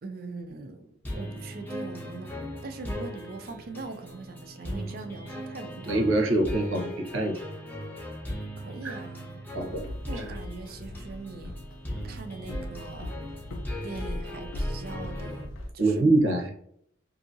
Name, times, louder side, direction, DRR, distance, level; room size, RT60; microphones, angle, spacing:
voice 1, 0.0-2.3 2.6-6.2 8.5-9.5 10.1-11.6 12.0-13.2 13.8-16.1, right 3 dB, 50° right, 0.4 m, -41 dB
sound 1, 1.0-15.4, left 1 dB, 10° left, 0.7 m, -39 dB
voice 2, 5.9-7.4 8.8-8.9 9.5-9.8 15.8-16.5, right 2 dB, 80° right, 0.8 m, -24 dB
Walk footsteps, 9.6-15.7, left 1 dB, 85° left, 0.5 m, -38 dB
2.7 x 2.6 x 2.6 m
head